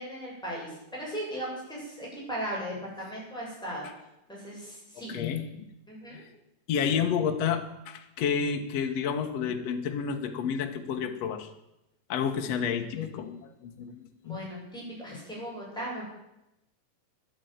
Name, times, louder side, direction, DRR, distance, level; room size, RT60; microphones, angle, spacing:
voice 1, 0.0-3.8 4.3-5.2 5.9-6.2 12.4-12.5 14.2-16.0, right 1 dB, ahead, -5 dB, 7.7 m, -37 dB
voice 2, 5.1-5.7 6.1-6.2 6.7-11.5 12.1-14.5, left 7 dB, 60° left, 5 dB, 2.2 m, -30 dB
12.5 x 11.0 x 9.3 m, 0.88 s
omnidirectional pair, 3.5 m